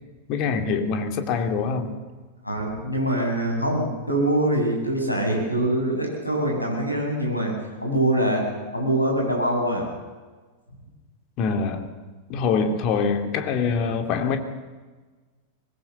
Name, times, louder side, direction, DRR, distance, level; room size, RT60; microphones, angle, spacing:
voice 1, 0.3-1.9 11.4-11.9 12.3-14.4, left 5 dB, 40° left, 6 dB, 2.9 m, -24 dB
voice 2, 2.4-7.5 7.8-8.5 8.7-9.9, right 1 dB, 85° left, 0 dB, 7.9 m, -24 dB
24.0 x 21.0 x 7.0 m, 1.3 s
figure-of-eight pair, 90°, 0 cm